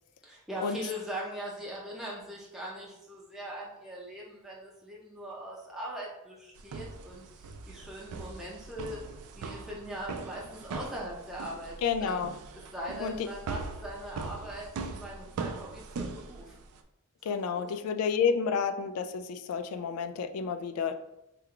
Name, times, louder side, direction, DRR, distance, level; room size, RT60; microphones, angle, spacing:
voice 1, 0.2-9.0 9.4-12.1 12.7-16.6 17.2-17.7, equal, ahead, -5 dB, 0.5 m, -41 dB
sound 1, 6.6-16.8, right 4 dB, 75° right, 0.3 m, -41 dB
voice 2, 11.8-12.3 13.0-13.3 17.2-20.9, left 6 dB, 90° left, 8 dB, 0.3 m, -30 dB
3.2 x 2.2 x 3.7 m, 0.86 s
head